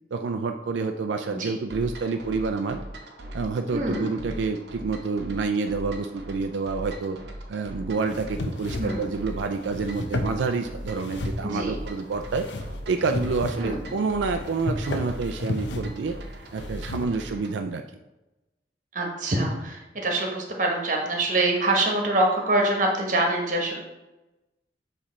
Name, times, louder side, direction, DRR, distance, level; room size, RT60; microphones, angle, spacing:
voice 1, 0.1-2.8 3.3-7.2 7.5-12.5 12.9-16.2 16.5-17.8, right 4 dB, 90° right, 6 dB, 0.4 m, -28 dB
sound 1, 1.7-17.6, right 1 dB, 70° right, 0.9 m, -40 dB
voice 2, 3.7-4.2 8.8-9.1 11.4-11.8 13.5-13.8 18.9-23.8, right 2 dB, 45° right, 0 dB, 1.3 m, -25 dB
sound 2, 8.1-17.0, left 2 dB, 85° left, 0.7 m, -33 dB
7.3 x 3.3 x 4.2 m, 1.0 s
head